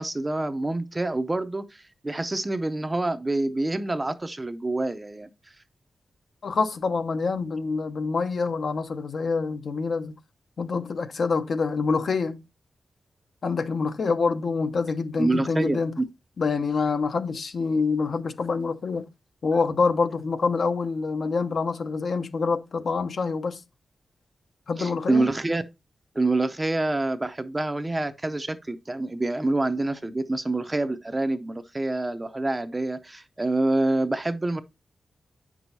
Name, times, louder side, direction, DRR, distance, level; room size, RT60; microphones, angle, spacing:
voice 1, 0.0-5.3 15.2-16.0 24.8-25.6 26.1-34.6, right 2 dB, 20° right, 0.6 m, -27 dB
voice 2, 6.4-10.2 10.6-12.4 13.4-16.0 16.4-19.1 19.4-23.6 24.7-25.3, left 4 dB, 60° left, 0.8 m, -26 dB
8.8 x 6.1 x 2.7 m
wide cardioid pair, 130°, 0 cm